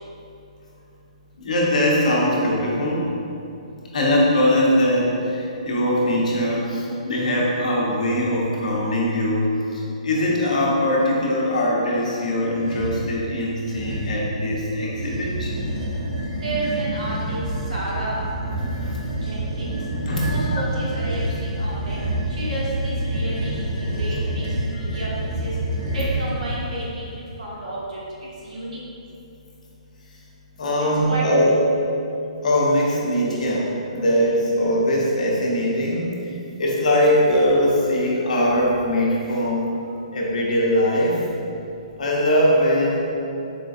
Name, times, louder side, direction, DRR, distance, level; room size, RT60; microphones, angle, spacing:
voice 1, 1.4-3.0 3.9-15.6 18.7-19.0 20.1-20.6 24.7-24.8 30.6-31.6 32.4-36.1 36.6-39.6 40.1-41.2 42.0-43.0, equal, 80° left, -4 dB, 0.8 m, -21 dB
sound 1, 12.5-13.1 13.7-14.3 14.9-26.9, right 1 dB, 25° right, 0.5 m, -27 dB
voice 2, 16.4-17.4 17.7-18.2 19.2-19.8 20.2-22.0 22.3-25.1 25.4-25.5 25.9-27.1 27.4-28.0 28.4-28.8 31.1-31.3, right 1 dB, 80° right, -6 dB, 1.2 m, -31 dB
4.3 x 2.5 x 2.5 m, 2.6 s
hypercardioid pair, 170°, 4 cm